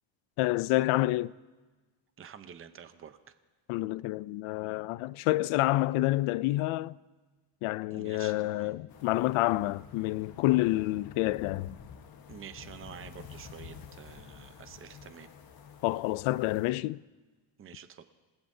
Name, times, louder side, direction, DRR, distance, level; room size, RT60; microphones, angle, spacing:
voice 1, 0.4-1.3 3.7-7.0 7.6-11.8 15.8-17.0, left 18 dB, 80° left, 0.5 m, -28 dB
voice 2, 2.2-3.3 7.9-8.7 12.3-15.3 17.6-18.1, right 8 dB, 25° right, 0.7 m, -48 dB
sound 1, 8.9-16.7, left 7 dB, 45° left, 1.3 m, -50 dB
28.5 x 18.5 x 2.7 m
cardioid pair, 135°, 49 cm